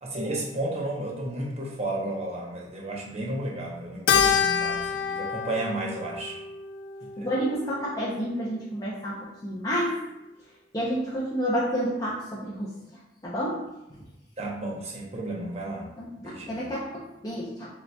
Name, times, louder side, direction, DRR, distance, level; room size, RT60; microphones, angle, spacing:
voice 1, 0.0-6.4 7.0-7.3 14.4-15.9 16.2-16.7, right 1 dB, 35° right, -2 dB, 0.7 m, -33 dB
Keyboard (musical), 4.1-8.7, left 7 dB, 80° left, 0.3 m, -28 dB
voice 2, 7.2-9.2 9.4-10.0 10.7-12.7 13.2-13.6 16.0-17.7, equal, 20° left, -7 dB, 0.6 m, -29 dB
6.5 x 2.8 x 2.2 m, 0.94 s
head